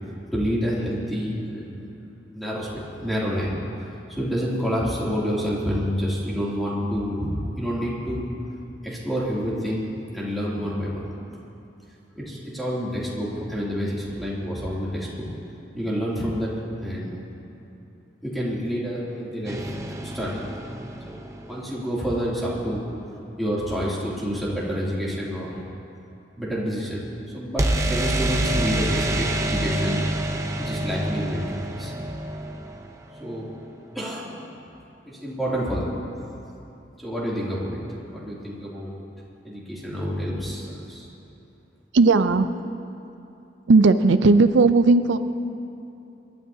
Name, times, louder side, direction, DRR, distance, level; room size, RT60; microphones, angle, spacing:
voice 1, 0.3-1.9 2.3-3.6 4.2-8.2 8.8-9.9 10.1-11.0 12.2-15.3 15.8-16.5 16.8-17.2 18.2-20.3 21.0-21.2 21.5-22.8 23.4-25.5 26.4-27.0 27.3-30.0 30.6-32.0 33.2-33.5 33.9-34.4 35.1-36.0 37.0-37.8 38.1-38.9 39.4-41.1, equal, ahead, -7 dB, 2.7 m, -28 dB
sound 1, 19.5-21.5 27.6-33.4, right 1 dB, 15° right, 0.7 m, -27 dB
voice 2, 41.9-42.5 43.7-45.2, right 3 dB, 90° right, 10 dB, 0.5 m, -16 dB
26.0 x 12.0 x 2.8 m, 2.8 s
head